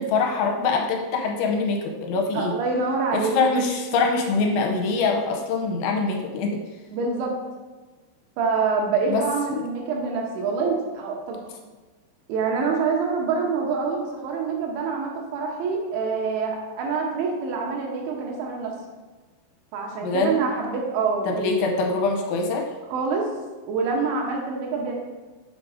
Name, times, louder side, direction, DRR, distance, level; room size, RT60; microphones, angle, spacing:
voice 1, 0.0-2.6 3.1-6.6 9.1-9.2 9.5-9.6 20.0-20.4 21.3-22.7, left 4 dB, 85° left, 3 dB, 3.0 m, -24 dB
voice 2, 2.3-3.3 6.9-7.3 8.4-11.4 12.3-18.7 19.7-21.6 22.9-23.3 23.7-25.0, right 4 dB, 75° right, -1 dB, 3.1 m, -26 dB
7.6 x 5.1 x 3.8 m, 1.3 s
omnidirectional pair, 5.5 m